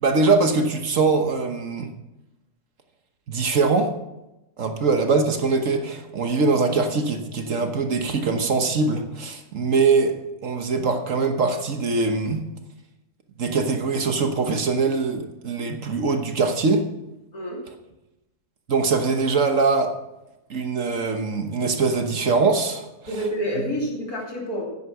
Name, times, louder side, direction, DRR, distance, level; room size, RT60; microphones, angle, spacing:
voice 1, 0.0-1.9 3.3-3.9 4.6-10.1 10.4-12.4 13.4-16.8 18.7-19.9 20.5-23.2, right 4 dB, 55° right, 6 dB, 1.4 m, -22 dB
voice 2, 17.3-17.6 23.1-24.7, equal, 70° left, -3 dB, 3.7 m, -28 dB
10.5 x 9.7 x 5.8 m, 0.94 s
omnidirectional pair, 1.6 m